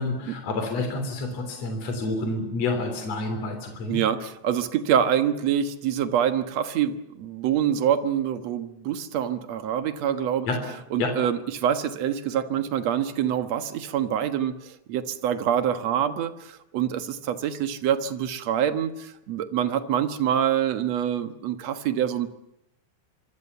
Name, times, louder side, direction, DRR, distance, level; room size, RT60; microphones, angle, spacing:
voice 1, 0.0-4.0 10.5-10.6 11.0-11.1, left 2 dB, 60° left, 5 dB, 4.5 m, -28 dB
voice 2, 3.9-10.5 10.9-22.3, right 9 dB, 65° right, 9 dB, 2.6 m, -26 dB
25.5 x 25.5 x 7.0 m, 0.79 s
omnidirectional pair, 3.3 m